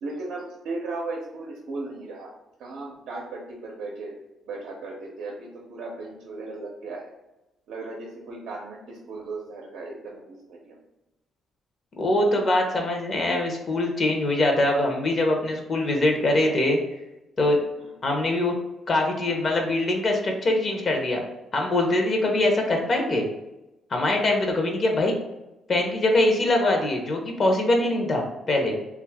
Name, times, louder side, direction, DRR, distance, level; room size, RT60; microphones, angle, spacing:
voice 1, 0.0-2.3 2.6-4.2 4.4-7.1 7.7-10.8 17.8-17.9, right 3 dB, 80° right, -2 dB, 0.5 m, -36 dB
voice 2, 12.0-16.8 17.4-17.6 18.0-18.5 18.9-21.2 21.5-23.3 23.9-25.2 25.7-28.8, left 1 dB, 45° left, 2 dB, 0.6 m, -23 dB
2.6 x 2.3 x 3.4 m, 0.97 s
cardioid pair, 90°, 0 cm